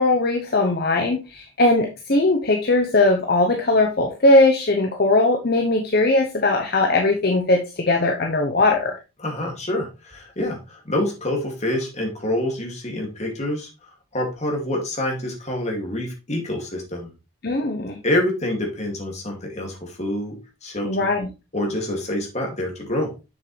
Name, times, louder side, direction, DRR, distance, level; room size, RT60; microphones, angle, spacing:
voice 1, 0.0-9.0 17.4-18.0 20.8-21.3, left 2 dB, 50° left, 3 dB, 0.9 m, -19 dB
voice 2, 9.2-13.7 14.1-17.1 18.0-20.4 20.6-21.1 21.5-23.1, left 1 dB, 35° left, 1 dB, 2.5 m, -26 dB
7.3 x 6.8 x 3.3 m, 0.28 s
head